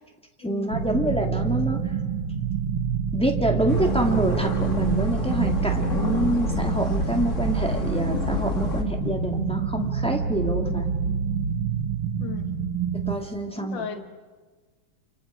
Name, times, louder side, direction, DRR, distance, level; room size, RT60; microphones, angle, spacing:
voice 1, 0.4-1.8 3.1-10.8 13.1-13.8, right 1 dB, 5° left, 2 dB, 2.1 m, -26 dB
sound 1, 0.7-13.2, right 7 dB, 80° right, 2.4 m, -27 dB
sound 2, 3.7-8.8, left 4 dB, 40° left, 2.2 m, -29 dB
voice 2, 12.2-12.5 13.6-14.0, left 8 dB, 70° left, 7 dB, 2.2 m, -35 dB
29.5 x 29.0 x 5.0 m, 1.4 s
omnidirectional pair, 2.1 m